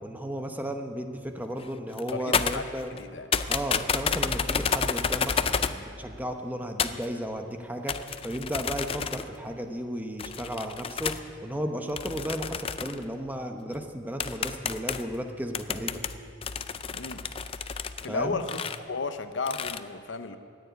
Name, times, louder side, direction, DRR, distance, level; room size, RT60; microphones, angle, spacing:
voice 1, 0.0-2.9 3.5-11.2 11.4-16.0 18.1-18.4, equal, 10° right, 5 dB, 0.8 m, -34 dB
sound 1, 1.6-1.7 1.9-3.0 3.3-5.8 6.8-7.1 7.9-9.4 10.2-11.2 12.0-13.1 13.7-13.8 14.2-15.2 15.5-18.1 18.4-18.8 19.5-19.8, left 6 dB, 30° left, 0.4 m, -30 dB
voice 2, 2.1-3.3 16.9-17.2 18.0-20.4, left 4 dB, 65° left, 10 dB, 0.7 m, -34 dB
14.0 x 9.5 x 9.3 m, 2.4 s
head